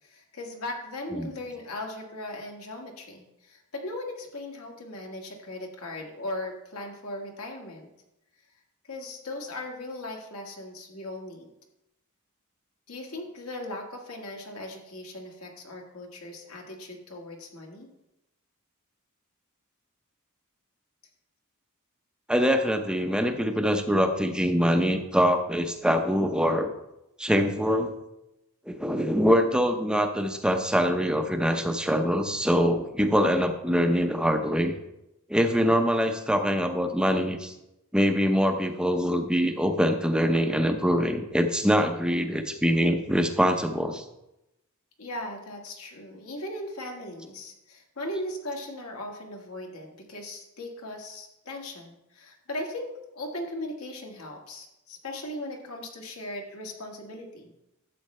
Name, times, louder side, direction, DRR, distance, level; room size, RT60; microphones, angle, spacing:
voice 1, 0.0-7.9 8.9-11.5 12.9-17.9 45.0-57.5, left 1 dB, 75° left, 1 dB, 1.7 m, -38 dB
voice 2, 22.3-26.7 27.2-27.9 28.7-34.7 35.3-37.5 37.9-44.0, equal, 5° right, 6 dB, 0.6 m, -24 dB
12.0 x 7.7 x 3.2 m, 0.90 s
head